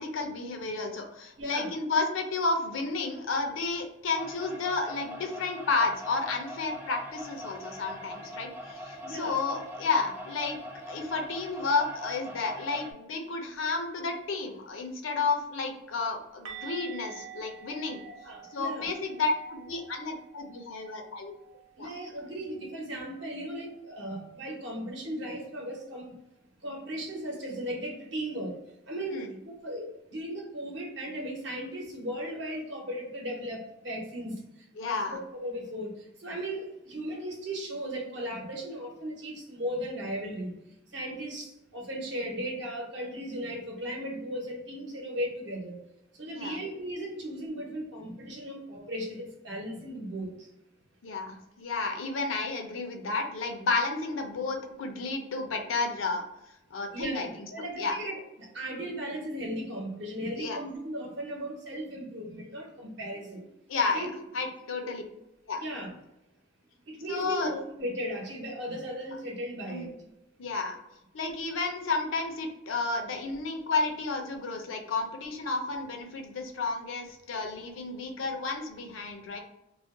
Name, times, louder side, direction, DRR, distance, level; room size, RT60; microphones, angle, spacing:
voice 1, 0.0-10.6 10.9-18.0 18.5-21.3 21.8-21.9 29.1-29.3 34.8-35.2 46.4-46.6 51.0-56.2 56.7-57.3 57.8-57.9 60.4-60.6 63.7-64.1 64.3-65.0 65.5-65.6 67.1-67.5 69.7-69.9 70.4-70.8 71.1-79.4, left 3 dB, 80° left, 4 dB, 0.5 m, -31 dB
voice 2, 1.4-1.7 9.0-9.4 18.0-18.9 21.8-26.1 26.6-28.5 28.9-34.4 34.8-40.5 40.9-45.8 46.1-50.5 56.9-63.4 63.9-64.1 64.8-65.0 65.6-65.9 66.9-69.9, equal, 60° right, 0 dB, 0.8 m, -36 dB
sound 1, 4.1-12.9, equal, 10° right, 0.4 m, -42 dB
sound 2, 16.5-22.2 22.5-22.7 23.1-23.2 26.5-26.6, right 9 dB, 85° right, 0.5 m, -48 dB
2.4 x 2.2 x 3.6 m, 0.89 s
head